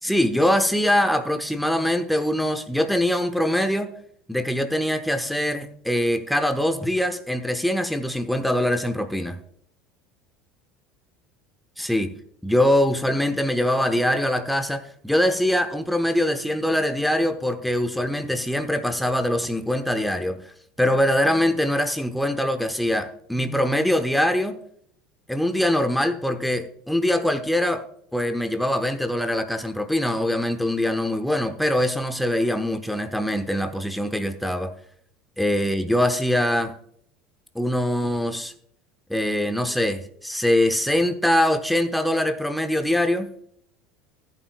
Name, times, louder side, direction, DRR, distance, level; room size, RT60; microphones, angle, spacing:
voice 1, 0.0-3.9 4.3-9.4 11.8-12.1 12.4-20.4 20.8-24.6 25.3-27.8 28.1-34.7 35.4-36.7 37.5-38.5 39.1-43.3, left 1 dB, ahead, 8 dB, 1.0 m, -23 dB
15.0 x 9.1 x 2.3 m, 0.64 s
figure-of-eight pair, 70°, 0 cm